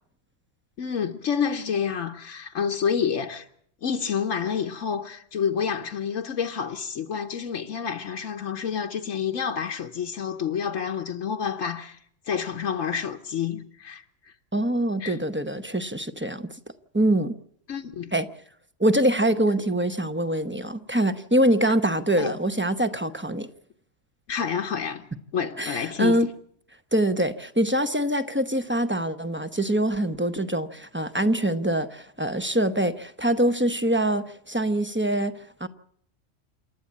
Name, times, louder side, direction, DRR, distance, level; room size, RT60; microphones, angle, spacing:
voice 1, 0.8-3.4 3.8-12.0 12.3-14.0 15.0-15.2 17.7-18.1 21.7-21.8 22.2-22.3 24.3-25.1 25.3-26.2, left 7 dB, 85° left, 1.4 m, -28 dB
voice 2, 14.5-16.5 16.9-17.4 18.1-18.3 18.8-23.5 25.6-26.3 26.9-35.7, right 1 dB, 10° right, 0.7 m, -24 dB
27.5 x 12.0 x 8.6 m
omnidirectional pair, 1.3 m